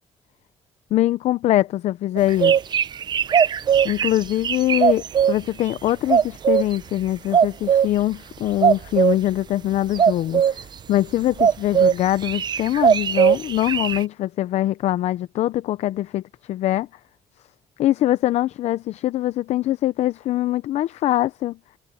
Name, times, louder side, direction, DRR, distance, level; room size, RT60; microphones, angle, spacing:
voice 1, 0.9-2.5 3.8-16.9 17.8-21.6, left 14 dB, 60° left, 0.5 m, -23 dB
sound 1, 2.2-5.4 6.1-6.8 7.3-7.9 8.6-9.2 10.0-10.6 11.4-11.9 12.2-14.0, right 8 dB, 35° right, 0.7 m, -18 dB
cardioid pair, 135°, 12 cm